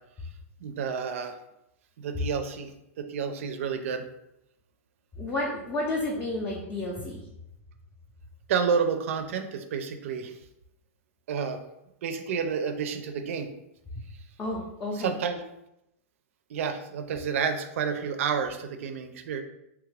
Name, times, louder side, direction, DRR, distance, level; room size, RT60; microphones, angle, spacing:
voice 1, 0.6-1.4 2.0-4.1 8.5-10.4 11.3-11.6 12.0-13.5 15.0-15.4 16.5-19.4, right 6 dB, 65° right, 7 dB, 0.4 m, -30 dB
voice 2, 5.2-7.2 14.4-15.2, left 1 dB, 15° left, -4 dB, 0.4 m, -31 dB
2.9 x 2.4 x 3.3 m, 0.85 s
supercardioid pair, 155°, 8 cm